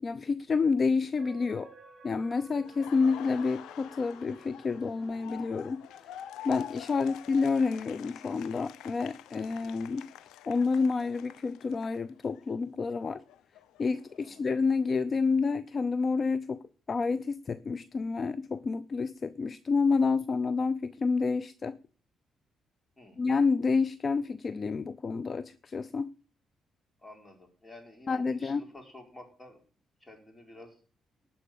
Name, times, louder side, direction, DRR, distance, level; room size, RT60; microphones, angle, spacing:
voice 1, 0.0-1.7 2.0-5.8 6.4-10.1 10.5-13.2 13.8-16.6 16.9-21.8 23.2-26.1 28.1-28.6, left 4 dB, 40° left, 0.5 m, -29 dB
sound 1, 1.2-6.9 7.3-7.4, right 2 dB, 40° right, 3.3 m, -55 dB
Laughter, 2.6-12.5 12.8-14.8, left 11 dB, 90° left, 0.6 m, -48 dB
voice 2, 27.0-29.6 30.0-30.8, left 2 dB, 15° left, 4.0 m, -51 dB
12.0 x 5.2 x 8.5 m
cardioid pair, 90°, 0 cm